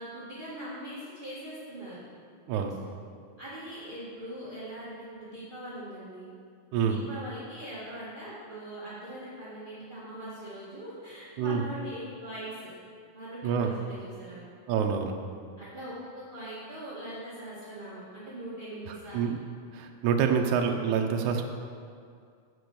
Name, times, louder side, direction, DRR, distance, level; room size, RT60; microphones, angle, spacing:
voice 1, 0.0-2.0 3.4-6.3 6.8-12.7 13.1-14.4 15.6-19.3, right 1 dB, 30° right, -10 dB, 0.9 m, -41 dB
voice 2, 6.7-7.0 11.4-11.6 13.4-13.7 14.7-15.1 18.9-19.4 19.7-21.4, right 7 dB, 75° right, 3 dB, 1.9 m, -27 dB
7.8 x 6.2 x 6.7 m, 2.2 s
omnidirectional pair, 3.9 m